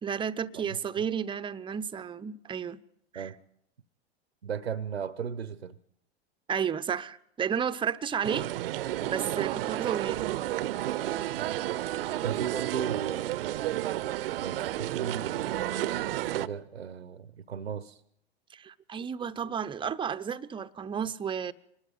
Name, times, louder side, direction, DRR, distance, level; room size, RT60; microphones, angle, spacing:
voice 1, 0.0-2.8 3.1-3.3 6.5-8.5 9.0-10.4 18.5-21.5, right 7 dB, 15° right, 0.8 m, -32 dB
voice 2, 4.4-5.8 11.3-11.5 12.2-13.6 14.4-16.0 16.3-18.0, right 7 dB, 90° right, 0.9 m, -36 dB
sound 1, 8.2-16.5, right 14 dB, 65° right, 0.8 m, -31 dB
25.0 x 20.5 x 5.4 m
figure-of-eight pair, 95°, 32 cm